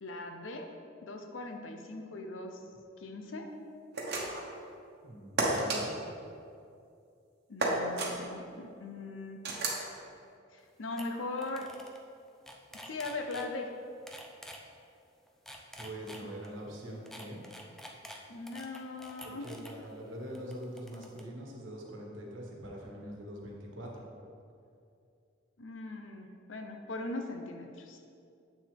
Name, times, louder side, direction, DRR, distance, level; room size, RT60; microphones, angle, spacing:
voice 1, 0.0-0.7 1.0-2.6 3.0-3.5 7.5-9.4 10.5-11.7 12.9-13.7 18.3-19.5 25.6-28.0, left 2 dB, 75° left, 4 dB, 0.8 m, -40 dB
sound 1, 3.9-4.5 5.4-5.8 7.6-8.1 9.4-9.8, right 2 dB, 60° right, 1.1 m, -31 dB
voice 2, 5.0-6.0 15.7-17.5 19.2-24.1, equal, 75° right, -1 dB, 1.4 m, -43 dB
sound 2, 10.6-10.7 11.0-11.1 11.4-12.0 12.3-13.5 14.1-14.6 15.3-16.5 17.1-19.7 20.3-21.2, equal, ahead, 0.5 m, -48 dB
8.4 x 6.2 x 3.5 m, 2.5 s
head